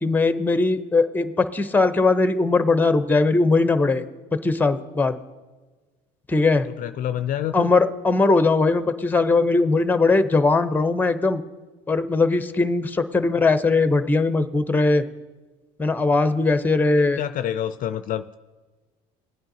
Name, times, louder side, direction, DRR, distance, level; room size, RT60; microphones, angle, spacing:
voice 1, 0.0-4.0 4.3-5.2 6.3-6.7 7.5-11.4 11.9-15.0 15.8-17.2, left 3 dB, 10° left, 11 dB, 0.7 m, -20 dB
voice 2, 6.8-7.7 17.0-18.4, left 11 dB, 50° left, 11 dB, 0.4 m, -27 dB
19.5 x 8.8 x 2.7 m, 1.3 s
supercardioid pair, 85°, 18 cm